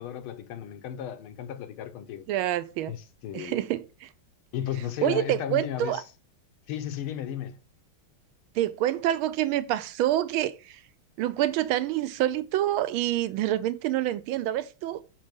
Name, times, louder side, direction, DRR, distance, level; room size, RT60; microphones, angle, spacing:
voice 1, 0.0-2.3 2.9-3.5 4.5-6.0 6.7-7.6, left 10 dB, 85° left, 1.6 m, -34 dB
voice 2, 2.3-2.9 3.3-4.1 5.0-6.0 8.5-10.8 11.2-15.0, right 13 dB, 80° right, 1.4 m, -27 dB
6.0 x 5.3 x 5.1 m
omnidirectional pair, 2.3 m